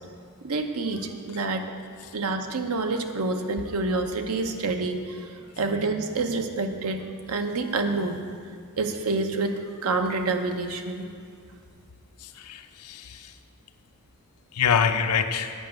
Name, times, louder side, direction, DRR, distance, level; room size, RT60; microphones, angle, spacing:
voice 1, 0.4-1.8 2.1-7.0 7.3-8.2 8.8-11.1, right 3 dB, 80° right, 6 dB, 0.8 m, -28 dB
voice 2, 12.2-13.3 14.5-15.5, left 6 dB, 90° left, 8 dB, 0.6 m, -25 dB
9.1 x 5.7 x 7.8 m, 2.2 s
head